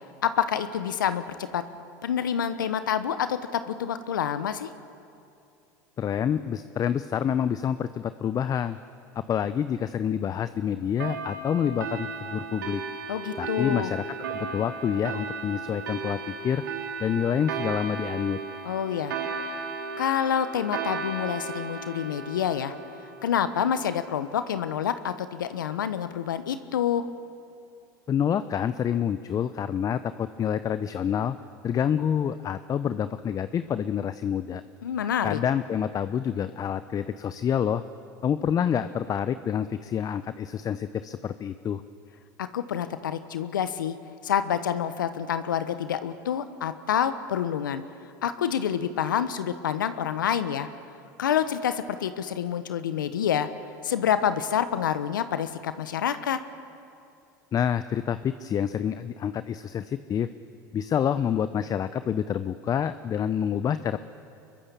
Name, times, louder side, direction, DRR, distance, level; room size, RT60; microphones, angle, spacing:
voice 1, 0.2-1.6 2.0-4.7 13.1-13.9 18.6-19.1 20.0-22.7 23.2-27.1 34.8-35.4 42.4-44.0 44.2-47.8 48.2-50.7 51.2-53.5 53.8-56.4, left 9 dB, 85° left, 11 dB, 1.0 m, -27 dB
voice 2, 6.0-8.8 9.3-12.8 13.4-16.6 17.0-18.4 28.1-31.4 31.6-34.6 35.2-37.8 38.2-41.8 57.5-60.3 60.7-64.0, left 8 dB, 35° left, 13 dB, 0.7 m, -27 dB
sound 1, 11.0-24.1, right 5 dB, 85° right, 2.8 m, -35 dB
25.0 x 22.0 x 7.0 m, 2.5 s
hypercardioid pair, 80°, 11 cm